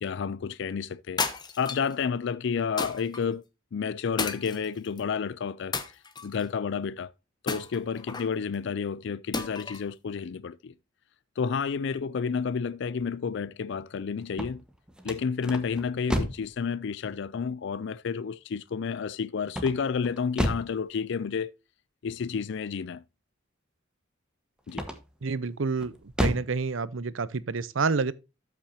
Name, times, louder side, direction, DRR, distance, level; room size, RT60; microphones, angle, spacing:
voice 1, 0.0-1.2 1.6-3.4 3.7-5.8 6.2-7.1 7.4-10.7 11.4-14.6 15.0-21.5 22.0-23.0 24.7-24.9, left 6 dB, 65° left, 0.4 m, -30 dB
sound 1, 1.2-1.9 2.8-3.2 4.2-5.0 5.7-6.5 7.5-8.3 9.3-9.9, left 4 dB, 25° left, 1.1 m, -33 dB
sound 2, 14.2-16.5 19.5-20.8 24.7-25.2 25.8-26.6, equal, 5° right, 1.3 m, -31 dB
voice 2, 25.2-25.9 26.2-28.1, right 4 dB, 85° right, 0.7 m, -28 dB
13.0 x 6.1 x 2.8 m
head